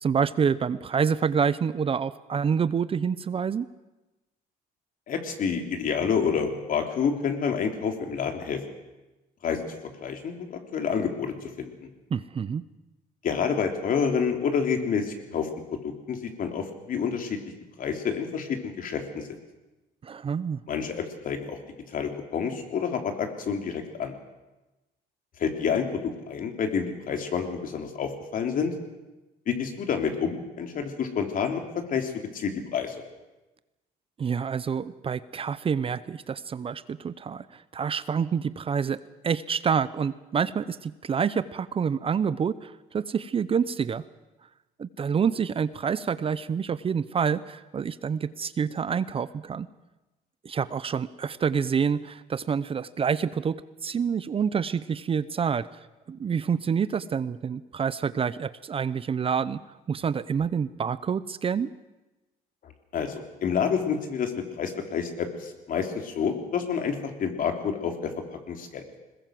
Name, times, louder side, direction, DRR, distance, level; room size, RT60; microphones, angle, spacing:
voice 1, 0.0-3.7 12.1-12.6 20.0-20.6 34.2-44.0 44.8-49.7 50.4-55.7 56.1-59.6 59.9-61.7, right 6 dB, 35° right, 16 dB, 0.7 m, -27 dB
voice 2, 5.1-8.6 9.4-11.7 13.2-15.5 15.8-17.4 17.8-19.4 20.7-21.6 21.9-24.1 25.4-28.7 29.5-33.0 62.6-68.8, left 6 dB, 55° left, 5 dB, 3.4 m, -29 dB
21.5 x 20.5 x 7.7 m, 1.1 s
cardioid pair, 110°, 17 cm